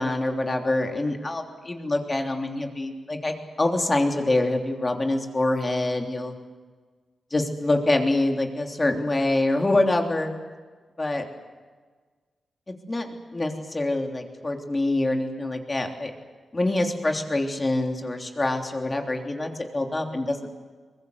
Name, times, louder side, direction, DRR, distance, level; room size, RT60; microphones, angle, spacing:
voice 1, 0.0-6.3 7.3-10.3 11.0-11.2 12.9-16.1 16.5-20.5, left 2 dB, 25° left, 3 dB, 3.3 m, -25 dB
23.0 x 21.0 x 8.1 m, 1.4 s
cardioid pair, 90°, 0 cm